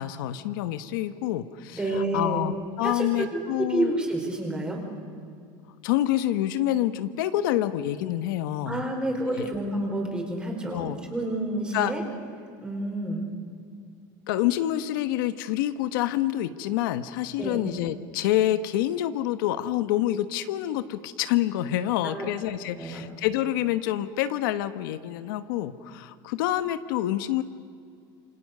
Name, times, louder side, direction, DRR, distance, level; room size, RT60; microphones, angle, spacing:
voice 1, 0.0-3.9 5.8-8.8 9.3-9.5 10.7-11.0 11.7-11.9 14.3-27.4, left 13 dB, 80° left, 11 dB, 1.2 m, -27 dB
voice 2, 1.7-2.4 2.8-4.8 8.7-12.0 12.6-13.3 17.4-17.7 22.0-22.3 22.8-23.0, right 1 dB, 10° right, 1 dB, 4.7 m, -29 dB
28.0 x 25.5 x 6.7 m, 2.3 s
cardioid pair, 165°, 11 cm